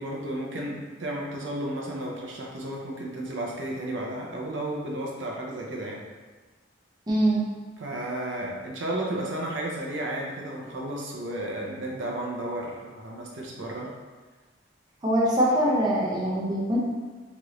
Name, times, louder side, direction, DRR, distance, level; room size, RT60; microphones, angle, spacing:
voice 1, 0.0-6.0 7.8-13.9, right 1 dB, 80° right, -2 dB, 0.6 m, -33 dB
voice 2, 7.1-7.4 15.0-16.8, right 1 dB, 20° right, -5 dB, 0.6 m, -23 dB
3.1 x 2.5 x 3.0 m, 1.3 s
head